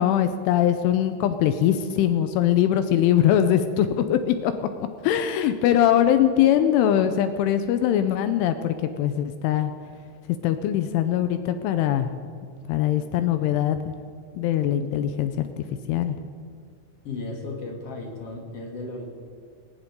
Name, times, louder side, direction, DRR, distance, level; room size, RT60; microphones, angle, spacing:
voice 1, 0.0-4.5 5.0-9.7 10.4-12.1 12.7-13.9 14.4-16.2, left 10 dB, 80° left, 9 dB, 3.0 m, -22 dB
voice 2, 17.0-19.0, left 3 dB, 40° left, -1 dB, 2.7 m, -35 dB
20.0 x 18.5 x 3.7 m, 2.2 s
omnidirectional pair, 6.0 m